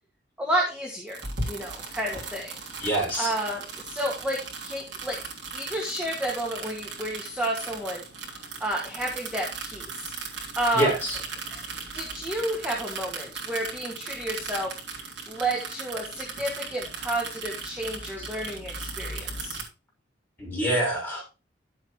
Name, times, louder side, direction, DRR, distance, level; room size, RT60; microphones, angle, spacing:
voice 1, 0.4-1.2 1.5-2.5 3.2-5.2 5.5-8.0 8.6-10.1 10.6-10.9 11.5-11.6 11.9-14.8 15.3-19.6, right 1 dB, 5° right, -2 dB, 2.1 m, -31 dB
sound 1, 1.1-19.6, right 4 dB, 65° right, 3.3 m, -37 dB
voice 2, 2.8-3.3 10.7-11.2 18.2-18.3 20.4-21.3, right 1 dB, 10° left, -3 dB, 6.2 m, -26 dB
12.5 x 7.7 x 3.2 m, 0.30 s
head